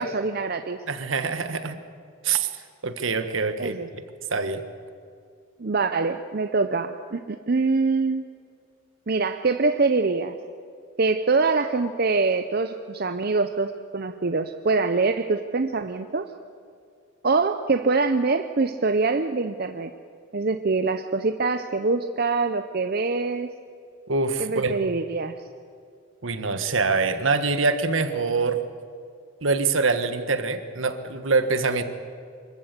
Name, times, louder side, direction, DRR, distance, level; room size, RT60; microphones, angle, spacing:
voice 1, 0.0-0.8 3.6-3.9 5.6-8.2 9.1-10.4 11.0-16.3 17.2-19.9 20.3-23.5 24.4-25.3, right 3 dB, 50° right, 8 dB, 0.7 m, -24 dB
voice 2, 0.9-1.8 2.2-2.5 2.8-4.0 4.3-4.6 24.1-24.8 26.2-28.6 29.4-31.8, right 4 dB, 75° right, 9 dB, 1.4 m, -24 dB
24.0 x 14.5 x 8.2 m, 2.3 s
head